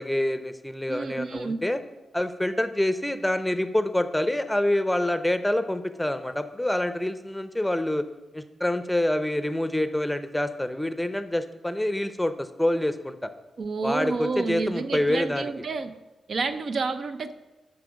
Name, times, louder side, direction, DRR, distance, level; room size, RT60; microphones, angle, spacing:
voice 1, 0.0-1.8 2.1-8.1 8.3-13.3 13.8-15.5, left 1 dB, 5° left, 10 dB, 0.6 m, -26 dB
voice 2, 0.9-1.7 13.6-16.0 16.3-17.3, right 4 dB, 65° right, 9 dB, 0.5 m, -30 dB
8.2 x 5.9 x 5.1 m, 1.1 s
cardioid pair, 70°, 0 cm